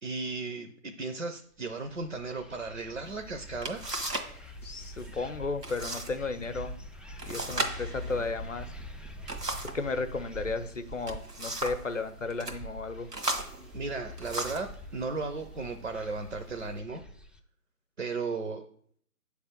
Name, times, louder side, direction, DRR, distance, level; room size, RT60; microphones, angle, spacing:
voice 1, 0.0-3.8 13.7-17.0 18.0-18.6, right 3 dB, 50° right, 6 dB, 0.7 m, -35 dB
sound 1, 1.8-17.4, equal, ahead, 0.3 m, -45 dB
sound 2, 3.1-3.2 3.6-4.4 4.6-5.1 5.6-6.1 6.4-6.5 7.2-9.9 10.8-11.9 12.3-12.6 13.1-14.7 15.5-15.7 16.2-16.7, right 2 dB, 85° right, 1.6 m, -36 dB
voice 2, 4.6-6.8 7.2-8.7 9.7-13.1, left 3 dB, 55° left, 10 dB, 0.7 m, -34 dB
7.9 x 3.4 x 6.5 m, 0.62 s
figure-of-eight pair, 155°, 46 cm